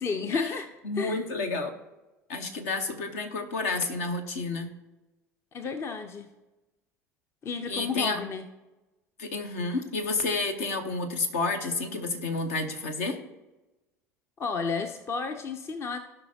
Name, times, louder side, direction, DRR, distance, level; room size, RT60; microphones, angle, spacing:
voice 1, 0.0-0.7 0.9-1.2 5.5-6.3 7.4-8.5 14.4-16.0, left 5 dB, 30° left, 8 dB, 0.7 m, -32 dB
voice 2, 0.8-1.7 2.3-4.7 7.7-8.2 9.2-13.2, left 3 dB, 60° left, 6 dB, 1.1 m, -30 dB
16.5 x 5.5 x 2.8 m, 1.1 s
figure-of-eight pair, 70°, 8 cm